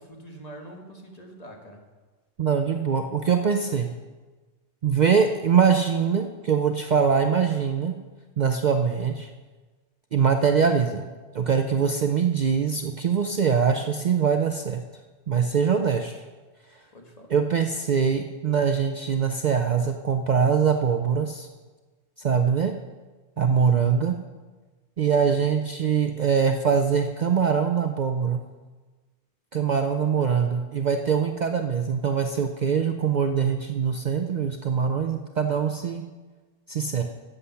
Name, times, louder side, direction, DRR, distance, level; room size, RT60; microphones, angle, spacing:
voice 1, 0.1-1.8 16.9-17.4 23.3-23.8 25.2-25.4 30.1-30.4, right 1 dB, 35° left, 2 dB, 1.4 m, -45 dB
voice 2, 2.4-3.9 4.8-8.0 8.4-9.3 10.1-11.1 11.3-14.8 15.3-16.2 16.7-16.8 17.3-21.5 22.2-22.7 23.4-24.2 25.0-28.4 29.5-36.0 36.7-37.0, right 6 dB, 50° right, 6 dB, 0.6 m, -23 dB
11.0 x 8.1 x 5.7 m, 1.3 s
omnidirectional pair, 1.2 m